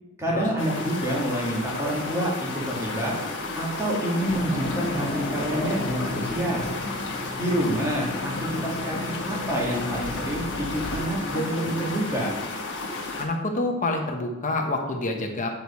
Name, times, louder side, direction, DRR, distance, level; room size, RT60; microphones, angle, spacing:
voice 1, 0.2-3.1 3.6-6.7 7.4-12.3, right 1 dB, 15° right, -4 dB, 1.8 m, -28 dB
sound 1, 0.6-13.3, left 3 dB, 55° left, 1.6 m, -32 dB
sound 2, 4.2-11.0, left 2 dB, 20° left, 1.8 m, -35 dB
voice 2, 13.2-15.5, left 2 dB, 35° left, 2 dB, 1.0 m, -27 dB
8.9 x 4.7 x 4.2 m, 0.99 s
head